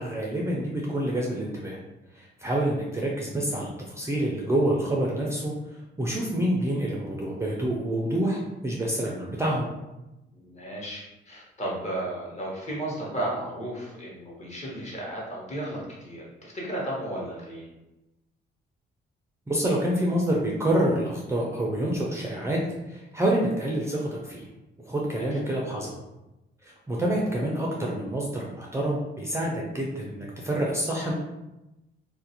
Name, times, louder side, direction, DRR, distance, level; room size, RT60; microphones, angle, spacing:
voice 1, 0.0-1.8 2.1-9.7 19.5-24.5 24.8-25.9 26.6-31.1, right 1 dB, 15° right, -3 dB, 0.4 m, -27 dB
voice 2, 10.3-17.7 25.2-25.4, right 1 dB, 35° left, -4 dB, 1.0 m, -34 dB
2.4 x 2.0 x 2.8 m, 0.97 s
cardioid pair, 90°, 20 cm